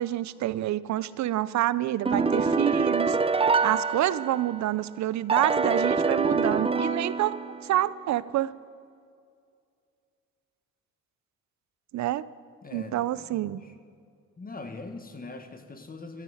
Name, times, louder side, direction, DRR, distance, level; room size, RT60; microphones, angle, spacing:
voice 1, 0.0-3.2 3.6-8.6 11.9-12.3 12.7-13.6, right 13 dB, 65° right, 18 dB, 0.6 m, -28 dB
sound 1, 2.1-4.7 5.3-7.8, right 4 dB, 20° right, 0.7 m, -25 dB
voice 2, 12.6-13.7 14.4-16.2, left 3 dB, 30° left, 7 dB, 1.5 m, -42 dB
15.0 x 13.0 x 6.4 m, 2.3 s
cardioid pair, 90°, 30 cm